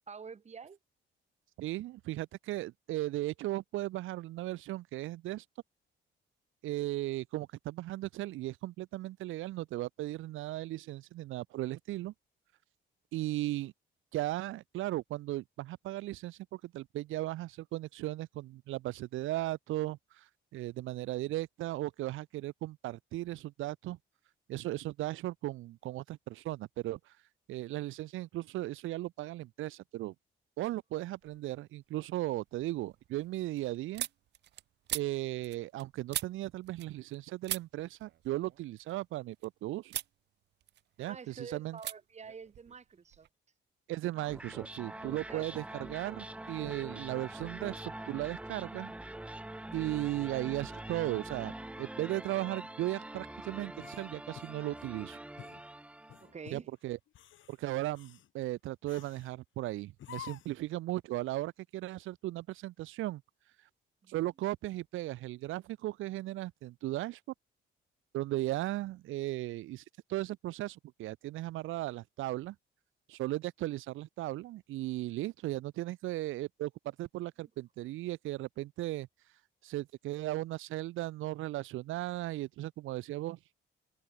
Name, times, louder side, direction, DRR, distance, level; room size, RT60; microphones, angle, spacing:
voice 1, 0.1-0.8 41.0-43.3 45.3-45.6 56.2-56.7 64.0-64.1, right 6 dB, 35° right, 1.7 m, -47 dB
voice 2, 1.6-5.4 6.6-12.1 13.1-13.7 14.1-24.0 24.5-27.1 27.5-30.1 30.6-34.1 34.9-39.9 41.0-41.8 43.9-48.9 49.7-55.2 56.5-57.0 57.5-63.2 64.1-67.2 68.1-69.8 70.1-72.5 73.1-79.1 79.6-83.4, right 16 dB, 85° right, 1.0 m, -36 dB
sound 1, 31.2-31.7 32.1-37.2 37.4-39.5 39.9-40.2 40.5-41.3 41.8-42.0 42.2-43.3, right 13 dB, 60° right, 0.5 m, -42 dB
sound 2, 44.1-56.4, right 1 dB, 5° right, 0.6 m, -44 dB
sound 3, 53.8-55.0 55.4-55.6 56.1-56.6 57.1-57.6 57.9-58.3 58.9-59.3 60.0-60.7, left 12 dB, 75° left, 3.7 m, -50 dB
cardioid pair, 90°, 20 cm